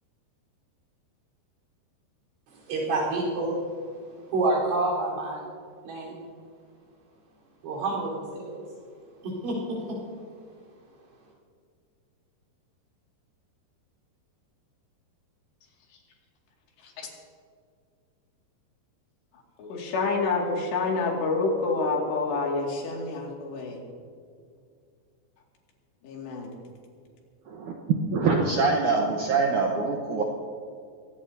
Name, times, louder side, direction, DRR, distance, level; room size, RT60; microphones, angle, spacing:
voice 1, 2.5-3.7 4.3-5.4 5.8-6.2 7.6-8.6 9.2-10.0, right 2 dB, 90° right, -5 dB, 6.6 m, -28 dB
voice 2, 19.6-23.8 26.0-26.5, left 3 dB, 75° left, -1 dB, 4.4 m, -28 dB
voice 3, 28.1-30.2, right 4 dB, 70° right, 0 dB, 1.9 m, -24 dB
23.5 x 17.0 x 2.8 m, 2.2 s
omnidirectional pair, 5.1 m